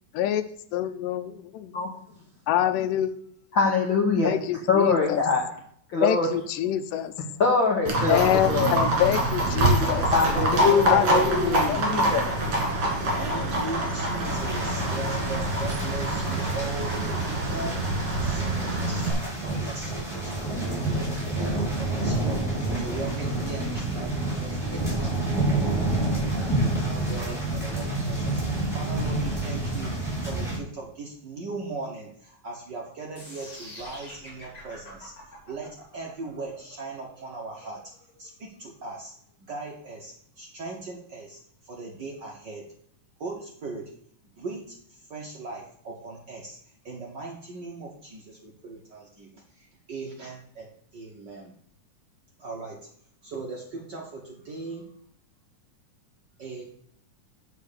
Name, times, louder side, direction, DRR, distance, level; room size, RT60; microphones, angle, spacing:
voice 1, 0.1-1.8 2.5-3.2 4.2-5.2 6.0-7.1 8.1-10.0 10.9-11.8, left 11 dB, 80° left, 11 dB, 2.2 m, -26 dB
voice 2, 3.5-4.3 4.7-5.4 5.9-6.3 7.4-8.8 10.1-12.2, left 4 dB, 60° left, -1 dB, 1.2 m, -23 dB
Livestock farm animals working animals, 7.9-19.1, right 1 dB, 50° right, 3.0 m, -25 dB
voice 3, 10.3-11.9 13.0-35.1 35.5-37.9 38.2-39.1 39.4-42.7 43.2-43.9 44.4-46.6 46.8-51.5 52.4-52.9 53.2-54.9 56.4-56.6, right 3 dB, 80° right, -1 dB, 0.9 m, -38 dB
sound 1, 14.2-30.6, right 2 dB, ahead, 3.1 m, -29 dB
sound 2, 33.2-39.2, left 1 dB, 30° left, 3.0 m, -46 dB
7.5 x 5.2 x 6.7 m, 0.65 s
omnidirectional pair, 3.7 m